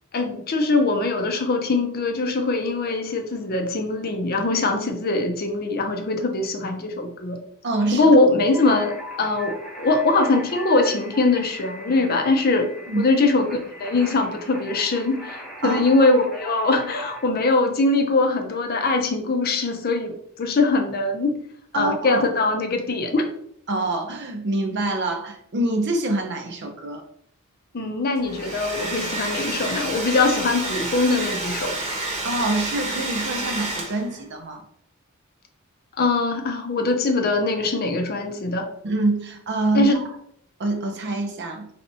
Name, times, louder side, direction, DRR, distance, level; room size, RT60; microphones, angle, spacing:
voice 1, 0.1-7.4 7.9-12.7 13.0-21.4 21.7-23.3 27.7-31.8 36.0-38.7 39.7-40.0, left 3 dB, 45° left, 5 dB, 0.5 m, -22 dB
voice 2, 7.6-8.1 8.7-8.8 12.9-13.1 15.6-16.1 21.7-22.2 23.7-27.0 32.2-34.6 38.8-39.9 40.6-41.7, right 2 dB, 50° right, 5 dB, 0.6 m, -25 dB
sound 1, 8.5-17.3, equal, ahead, 0.5 m, -40 dB
Domestic sounds home sounds, 28.2-34.2, right 2 dB, 30° right, 1.0 m, -29 dB
4.2 x 3.4 x 2.6 m, 0.68 s
head